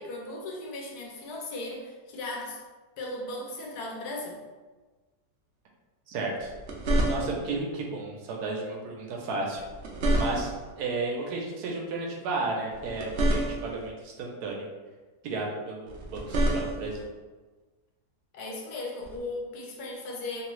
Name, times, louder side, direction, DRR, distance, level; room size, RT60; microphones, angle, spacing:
voice 1, 0.0-2.6 3.0-4.4 18.3-20.5, left 2 dB, 75° left, -1 dB, 1.1 m, -37 dB
voice 2, 6.1-6.5 7.1-9.6 10.2-10.5 10.8-14.7 15.3-17.0, right 3 dB, 80° right, 0 dB, 1.1 m, -33 dB
sound 1, 6.4-7.6 9.5-10.7 12.7-13.9 15.9-17.0 19.0-19.2, right 1 dB, 65° right, 0.7 m, -28 dB
3.0 x 2.3 x 3.0 m, 1.3 s
omnidirectional pair, 1.7 m